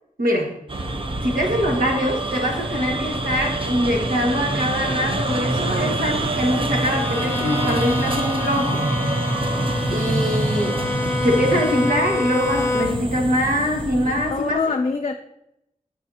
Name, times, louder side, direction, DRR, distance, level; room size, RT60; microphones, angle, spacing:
voice 1, 0.2-0.6 1.2-8.8 9.2-9.4 9.9-14.6, equal, 85° right, -1 dB, 1.5 m, -23 dB
sound 1, 0.7-14.5, right 2 dB, 40° right, 0.7 m, -26 dB
Bowed string instrument, 6.9-13.1, left 2 dB, 15° left, 0.9 m, -27 dB
voice 2, 14.0-15.1, left 4 dB, 45° left, 5 dB, 0.4 m, -24 dB
9.5 x 4.9 x 2.8 m, 0.82 s
wide cardioid pair, 55°, 14 cm